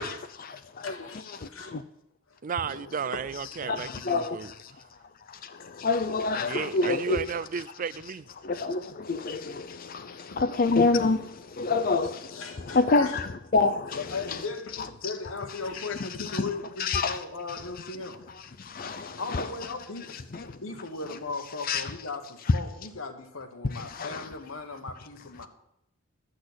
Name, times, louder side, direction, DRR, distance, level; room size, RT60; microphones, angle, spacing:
voice 1, 0.0-1.8 3.6-4.7 5.3-7.2 8.4-14.4 16.0-16.5 16.8-17.2 18.6-19.5 20.3-20.6 21.6-21.8 22.5-22.6 23.7-24.3, left 3 dB, 45° left, 0.5 m, -28 dB
voice 2, 0.8-1.8 2.3-2.4 3.1-3.3 3.6-3.8 10.3-10.4 12.3-13.2 13.9-18.3 19.2-25.5, left 3 dB, 75° left, 1.5 m, -38 dB
voice 3, 2.4-4.5 6.5-8.3, right 6 dB, 40° right, 0.4 m, -33 dB
12.0 x 6.4 x 8.0 m
head